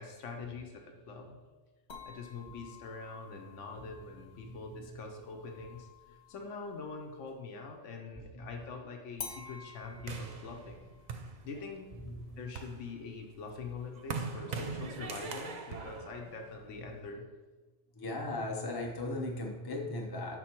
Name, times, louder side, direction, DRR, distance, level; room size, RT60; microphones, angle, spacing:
voice 1, 0.0-1.4 2.0-10.9 11.4-12.0 12.4-17.2, left 4 dB, 90° left, 3 dB, 1.1 m, -44 dB
sound 1, 1.9-7.5 9.2-14.2, left 5 dB, 65° left, 1.0 m, -52 dB
sound 2, 10.1-11.9 12.4-17.0, right 4 dB, 50° right, 0.6 m, -42 dB
voice 2, 12.0-12.4 17.9-20.4, left 2 dB, 30° left, 0 dB, 0.5 m, -38 dB
6.0 x 4.4 x 4.4 m, 1.3 s
omnidirectional pair, 1.2 m